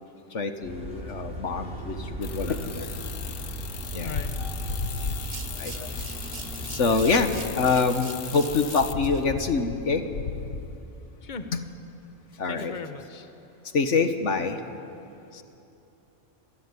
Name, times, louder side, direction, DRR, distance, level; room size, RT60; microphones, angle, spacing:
voice 1, 0.3-2.9 3.9-4.1 5.6-5.9 6.7-10.0 11.5-11.6 12.4-12.7 13.7-14.6, left 4 dB, 70° left, 7 dB, 1.7 m, -25 dB
sound 1, 0.6-7.7, right 2 dB, 5° right, 5.9 m, -37 dB
sound 2, 2.2-9.0, left 8 dB, 85° left, 1.4 m, -39 dB
sound 3, 5.2-9.3, right 6 dB, 40° right, 0.9 m, -44 dB
voice 2, 12.5-13.3 15.3-15.4, left 4 dB, 40° left, 8 dB, 1.3 m, -38 dB
27.0 x 21.5 x 9.7 m, 2.9 s
omnidirectional pair, 1.3 m